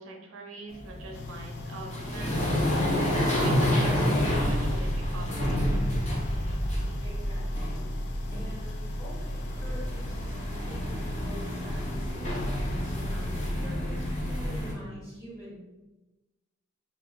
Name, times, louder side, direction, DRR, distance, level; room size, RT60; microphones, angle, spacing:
voice 1, 0.0-2.4 3.0-5.6, right 3 dB, 70° right, 1 dB, 0.6 m, -44 dB
sound 1, 0.7-14.7, equal, 35° left, 0.7 m, -29 dB
sound 2, 1.1-13.5, left 3 dB, 55° left, 0.3 m, -43 dB
voice 2, 7.0-7.9 8.3-10.3 10.7-15.6, equal, 15° left, -8 dB, 1.5 m, -46 dB
2.8 x 2.7 x 3.8 m, 1.1 s
head